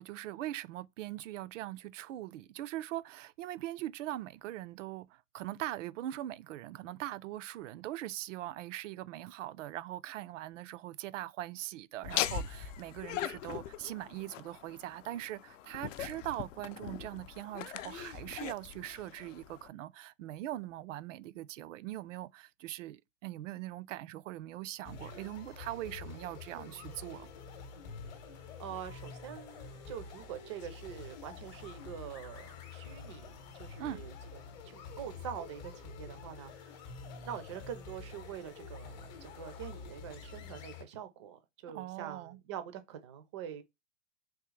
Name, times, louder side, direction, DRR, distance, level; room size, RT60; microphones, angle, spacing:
voice 1, 0.0-27.3 33.8-34.0 41.7-42.4, right 14 dB, 80° right, 0.5 m, -41 dB
Laughter, 12.0-19.7, left 11 dB, 85° left, 0.6 m, -40 dB
sound 1, 24.8-40.8, left 5 dB, 35° left, 0.7 m, -47 dB
voice 2, 28.4-36.7 37.2-43.6, right 9 dB, 25° right, 0.3 m, -45 dB
3.6 x 2.7 x 3.1 m
supercardioid pair, 165°, 37 cm